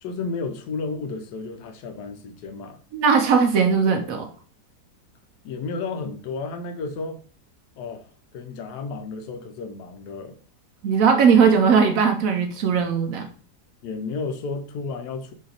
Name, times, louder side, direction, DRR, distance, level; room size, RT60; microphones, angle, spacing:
voice 1, 0.0-2.8 5.4-7.2 7.8-8.1 8.3-10.4 13.8-15.3, left 4 dB, 85° left, 6 dB, 1.2 m, -32 dB
voice 2, 2.9-4.3 10.8-13.3, right 6 dB, 70° right, 5 dB, 0.9 m, -18 dB
4.6 x 2.8 x 2.9 m, 0.42 s
omnidirectional pair, 1.7 m